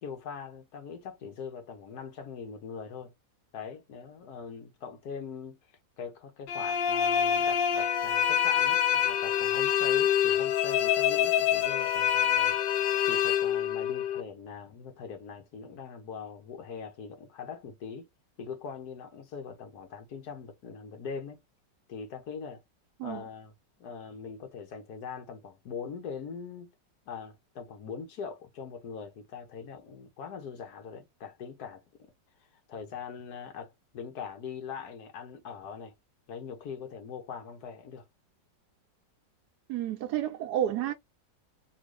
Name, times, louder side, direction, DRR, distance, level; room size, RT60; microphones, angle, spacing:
voice 1, 0.0-3.1 3.5-12.6 13.1-18.1 18.4-21.4 21.9-22.6 23.0-23.5 23.8-26.7 27.1-32.1 32.7-35.9 36.3-38.0, left 6 dB, 60° left, 1.4 m, -42 dB
sound 1, 6.5-14.2, left 9 dB, 85° left, 1.4 m, -26 dB
voice 2, 39.7-40.9, right 11 dB, 75° right, 1.0 m, -30 dB
3.7 x 2.4 x 3.1 m
omnidirectional pair, 2.0 m